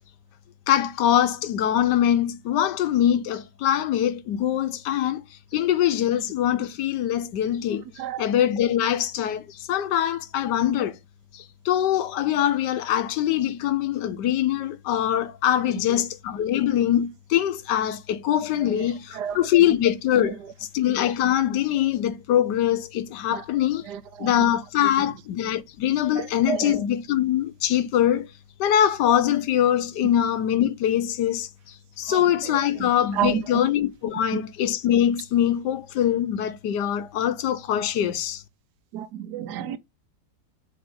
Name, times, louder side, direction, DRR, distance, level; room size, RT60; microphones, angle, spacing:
voice 1, 0.7-5.2 5.5-7.9 8.2-11.0 11.3-23.9 24.2-28.3 28.6-31.5 32.0-38.4, left 11 dB, 85° left, 1.3 m, -23 dB
voice 2, 23.9-24.5 26.2-26.8 32.1-32.5 32.8-33.6 38.9-39.8, right 10 dB, 80° right, 1.2 m, -31 dB
7.0 x 2.9 x 5.4 m
omnidirectional pair, 1.8 m